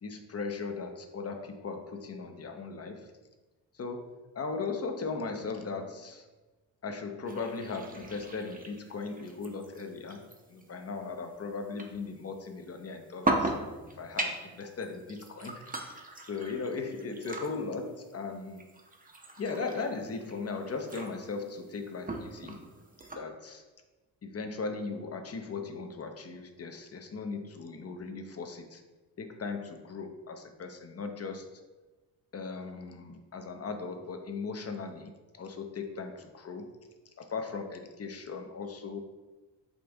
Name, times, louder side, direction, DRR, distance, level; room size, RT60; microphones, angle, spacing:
voice 1, 0.0-3.1 3.7-6.3 6.8-13.5 14.0-15.6 16.3-18.6 19.4-22.6 23.1-23.6 24.2-28.8 29.2-31.5 32.3-36.8 37.2-39.0, left 4 dB, 35° left, 5 dB, 0.7 m, -38 dB
sound 1, 7.3-23.2, right 2 dB, 20° right, 0.7 m, -39 dB
5.2 x 2.5 x 3.4 m, 1.2 s
hypercardioid pair, 45°, 45 cm